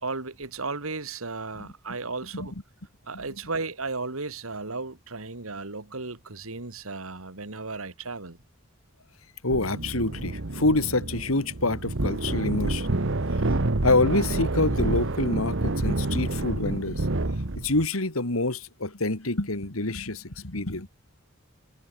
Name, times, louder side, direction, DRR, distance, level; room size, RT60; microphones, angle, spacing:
voice 1, 0.0-2.5 3.0-8.4, right 3 dB, 80° right, 2.3 m, -34 dB
voice 2, 9.4-12.9 13.8-17.1 17.6-20.9, left 2 dB, 85° left, 3.0 m, -26 dB
sound 1, 9.5-17.9, right 2 dB, 65° right, 1.3 m, -28 dB
head